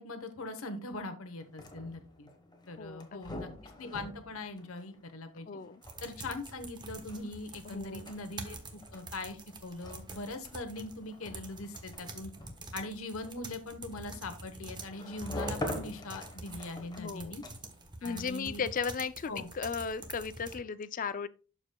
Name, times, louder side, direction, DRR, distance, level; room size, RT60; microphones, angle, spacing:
voice 1, 0.0-2.3 2.7-5.5 6.0-12.3 12.7-17.4 18.0-18.6 19.3-19.5, left 2 dB, 70° left, 1.0 m, -41 dB
sound 1, 1.4-17.9, left 1 dB, 20° left, 1.1 m, -46 dB
voice 2, 2.8-3.2 5.5-5.8 7.6-8.1 17.0-17.3 18.0-21.3, left 6 dB, 40° left, 0.4 m, -36 dB
sound 2, 5.8-20.6, right 2 dB, 20° right, 1.0 m, -46 dB
12.0 x 4.9 x 2.2 m
head